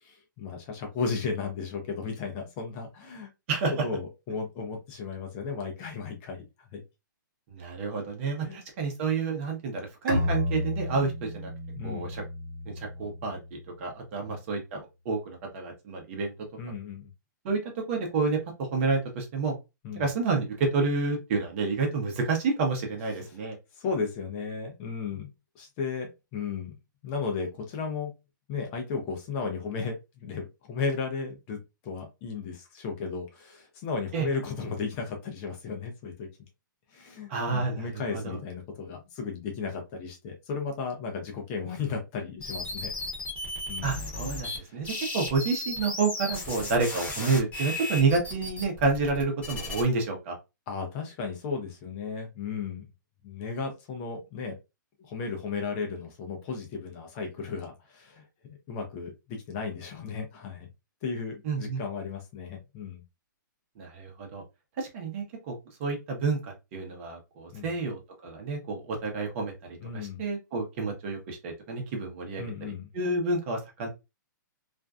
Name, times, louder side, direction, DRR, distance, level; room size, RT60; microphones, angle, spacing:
voice 1, 0.0-3.3 3.8-6.8 8.4-8.6 11.7-12.1 14.2-14.4 16.6-17.1 19.8-20.1 23.2-23.3 23.7-26.8 27.0-28.1 28.5-31.6 31.8-36.3 36.9-42.9 43.7-44.0 44.5-44.8 50.7-52.8 53.2-54.6 55.0-60.7 61.0-63.0 67.5-67.7 69.8-70.2 72.4-72.9, left 5 dB, 30° left, 3 dB, 0.5 m, -35 dB
voice 2, 7.5-11.5 11.8-12.2 12.7-16.3 17.4-17.6 17.9-19.6 19.9-23.6 34.1-34.3 37.3-38.4 43.8-50.3 61.4-61.8 63.8-64.4 64.8-65.5 65.8-73.9, right 4 dB, 40° right, 1 dB, 0.8 m, -29 dB
Bowed string instrument, 10.1-13.5, left 1 dB, 80° right, 1.0 m, -32 dB
sound 1, 42.4-44.6 44.8-49.8, left 2 dB, 10° left, 1.0 m, -35 dB
2.5 x 2.2 x 2.3 m, 0.25 s
hypercardioid pair, 150°, 11 cm